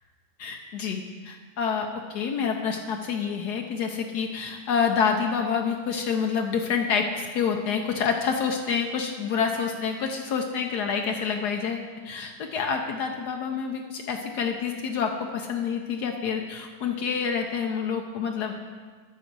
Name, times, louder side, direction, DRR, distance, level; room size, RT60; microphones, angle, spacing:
voice 1, 0.4-18.5, left 6 dB, 75° left, 3 dB, 1.2 m, -28 dB
9.2 x 6.5 x 6.0 m, 1.5 s
omnidirectional pair, 1.9 m